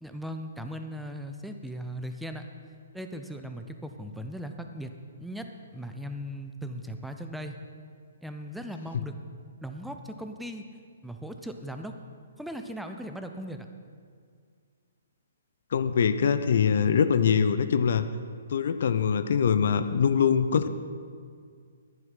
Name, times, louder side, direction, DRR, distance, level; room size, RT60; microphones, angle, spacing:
voice 1, 0.0-2.4 2.9-4.9 5.2-7.6 8.2-9.1 9.6-10.6 11.0-11.9 12.4-13.7, equal, ahead, 5 dB, 0.7 m, -38 dB
voice 2, 15.7-18.0 18.5-20.7, left 7 dB, 55° left, 11 dB, 0.6 m, -23 dB
10.5 x 10.5 x 5.8 m, 2.1 s
figure-of-eight pair, 125°, 0 cm